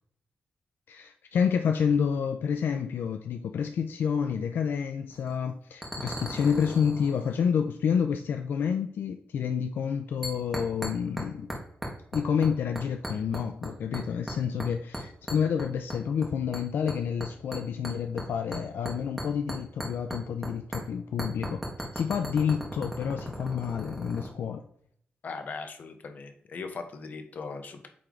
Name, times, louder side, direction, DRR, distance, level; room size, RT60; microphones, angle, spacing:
voice 1, 0.9-11.5 12.1-24.6, left 7 dB, 75° left, 6 dB, 0.4 m, -29 dB
sound 1, 5.1-5.4 5.8-7.4 10.2-11.2 11.5-12.5 12.8-13.7 13.9-14.7 14.9-16.2 16.5-20.5 20.7-20.8 21.2-24.3, equal, 5° right, 1.5 m, -36 dB
voice 2, 25.2-27.9, left 4 dB, 50° left, 6 dB, 0.9 m, -39 dB
8.6 x 3.3 x 3.8 m, 0.67 s
wide cardioid pair, 155°, 4 cm